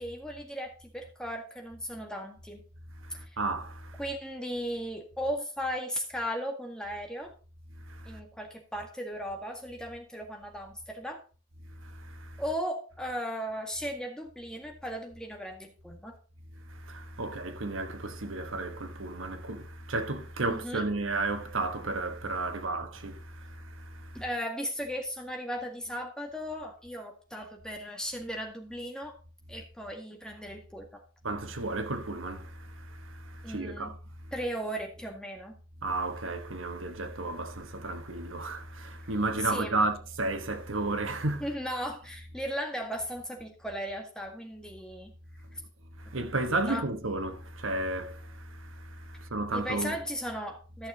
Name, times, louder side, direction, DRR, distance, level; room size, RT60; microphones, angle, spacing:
voice 1, 0.0-2.6 3.1-3.2 4.0-7.3 8.1-11.2 12.4-16.2 20.5-20.9 24.1-29.2 29.5-31.0 33.4-34.0 34.3-35.6 39.4-39.9 41.4-45.1 45.5-45.6 46.1-46.2 46.7-46.9 49.5-50.9, equal, 5° left, 1.8 m, -36 dB
voice 2, 3.0-4.0 7.9-8.2 11.8-12.4 16.7-24.2 31.2-33.9 35.8-41.5 46.0-50.0, right 2 dB, 80° right, 1.3 m, -33 dB
14.0 x 6.5 x 3.9 m
head